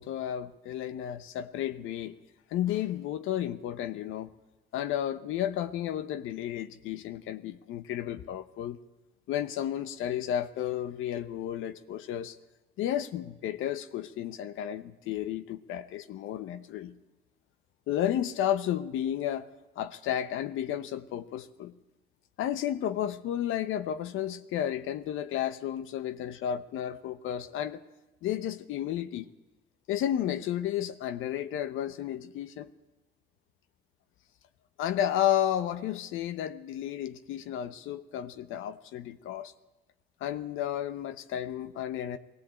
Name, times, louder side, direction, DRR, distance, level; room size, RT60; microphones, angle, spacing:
voice 1, 0.0-2.2 2.5-4.3 4.7-8.8 9.3-12.4 12.8-16.9 17.9-19.5 19.8-21.7 22.4-27.8 28.2-29.3 29.9-32.7 34.8-39.5 40.2-42.2, left 11 dB, 90° left, 0.9 m, -32 dB
20.5 x 16.0 x 8.8 m
cardioid pair, 90°, 20 cm